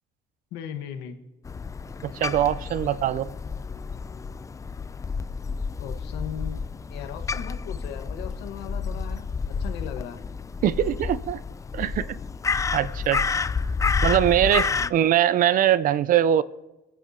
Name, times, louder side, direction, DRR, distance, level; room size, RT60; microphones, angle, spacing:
voice 1, 0.5-1.2 5.8-9.3 9.6-10.2 14.7-15.0, left 9 dB, 90° left, 6 dB, 1.3 m, -38 dB
Crow, 1.4-14.9, left 5 dB, 20° left, 0.3 m, -30 dB
voice 2, 2.0-3.3 10.6-11.4 11.7-12.1 12.7-13.2 14.0-16.4, right 11 dB, 55° right, 17 dB, 0.5 m, -22 dB
28.5 x 9.9 x 2.8 m, 1.0 s
cardioid pair, 110°, 17 cm